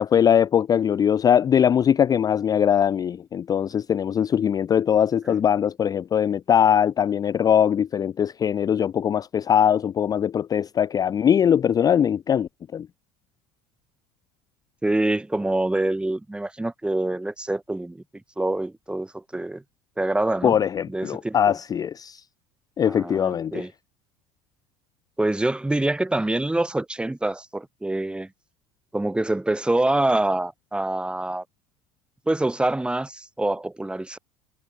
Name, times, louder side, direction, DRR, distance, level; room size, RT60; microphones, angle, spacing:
voice 1, 0.0-12.9 20.4-22.2 22.8-23.7, left 8 dB, 25° left, 0.4 m, -21 dB
voice 2, 14.8-18.0 18.4-19.6 20.0-20.6 20.9-21.6 22.8-23.7 25.2-28.3 28.9-31.4 32.3-34.2, right 2 dB, 5° right, 1.6 m, -25 dB
supercardioid pair, 105°, 14 cm